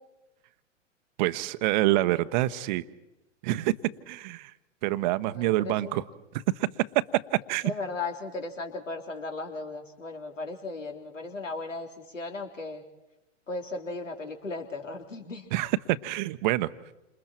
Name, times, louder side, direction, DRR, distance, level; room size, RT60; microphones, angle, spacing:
voice 1, 1.2-2.8 3.4-3.7 4.1-4.5 4.8-6.0 6.3-6.7 7.5-7.7 15.5-16.7, right 16 dB, 40° right, 13 dB, 1.0 m, -26 dB
voice 2, 5.3-5.9 7.6-11.9 12.1-12.8 13.5-15.5, left 3 dB, 75° left, 3 dB, 3.8 m, -36 dB
29.5 x 27.5 x 4.6 m, 0.94 s
figure-of-eight pair, 105°, 38 cm